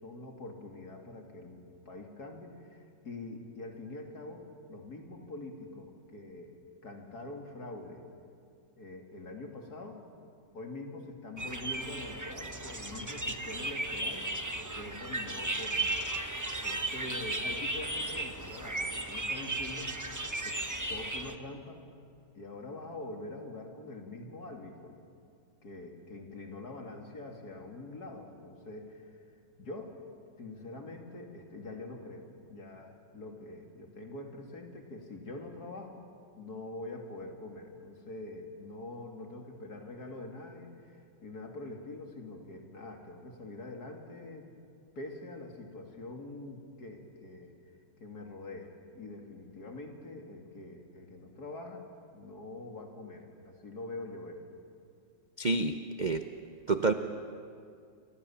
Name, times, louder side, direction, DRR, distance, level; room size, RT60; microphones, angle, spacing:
voice 1, 0.0-6.6 6.8-8.0 8.8-10.0 10.5-14.3 14.7-16.2 16.5-19.9 20.4-20.6 20.9-21.8 22.3-24.9 25.6-29.2 29.6-29.9 30.4-36.0 36.4-40.9 41.2-44.5 44.9-47.5 48.0-51.8 52.1-54.4, left 2 dB, 50° left, 2 dB, 3.2 m, -44 dB
sound 1, 11.4-21.4, right 2 dB, 15° right, 0.7 m, -35 dB
voice 2, 55.4-56.2 56.7-56.9, right 3 dB, 55° right, 8 dB, 0.4 m, -28 dB
29.0 x 24.5 x 7.3 m, 2.3 s
omnidirectional pair, 2.2 m